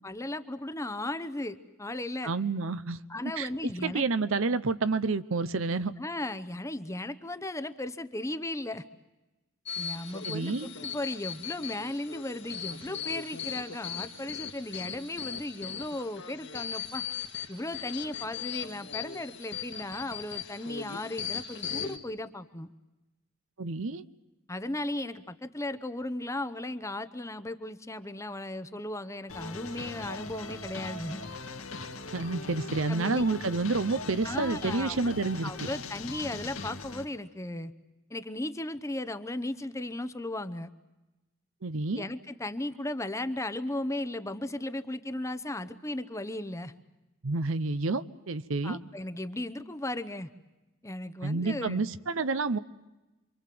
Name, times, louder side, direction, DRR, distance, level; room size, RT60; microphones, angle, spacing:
voice 1, 0.0-2.3 3.1-4.1 6.0-8.8 9.8-17.0 17.5-22.7 24.5-31.2 32.9-33.2 34.2-35.2 35.4-37.7 38.1-40.7 42.0-46.7 48.6-50.3 50.8-51.9, left 1 dB, 15° left, 11 dB, 0.9 m, -36 dB
voice 2, 2.2-3.0 3.4-5.9 10.2-10.7 23.6-24.0 32.1-35.7 41.6-42.1 47.2-48.8 51.2-52.6, right 3 dB, 70° right, 14 dB, 0.8 m, -29 dB
sound 1, 9.7-22.0, left 7 dB, 55° left, 1.8 m, -38 dB
sound 2, 29.3-37.0, left 3 dB, 75° left, 2.2 m, -40 dB
27.5 x 24.0 x 7.7 m, 1.1 s
head